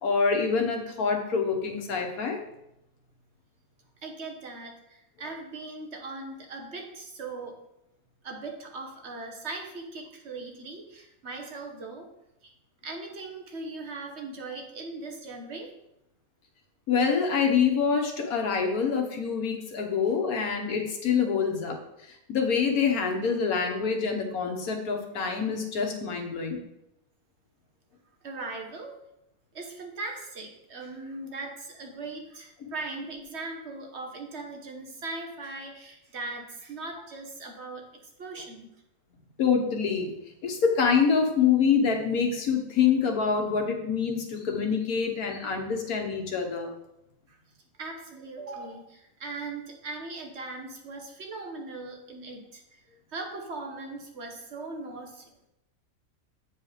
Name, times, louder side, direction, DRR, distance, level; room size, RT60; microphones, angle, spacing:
voice 1, 0.0-2.4 16.9-21.8 22.3-26.6 32.6-32.7 39.4-40.1 40.4-46.7, left 6 dB, 85° left, 3 dB, 1.6 m, -26 dB
voice 2, 4.0-7.6 8.2-12.1 12.4-12.5 12.8-15.7 28.2-29.0 29.5-37.8 38.2-38.7 47.3-47.4 47.8-52.8 53.1-55.3, right 3 dB, 50° right, 3 dB, 1.4 m, -39 dB
8.2 x 4.7 x 4.9 m, 0.84 s
omnidirectional pair, 1.5 m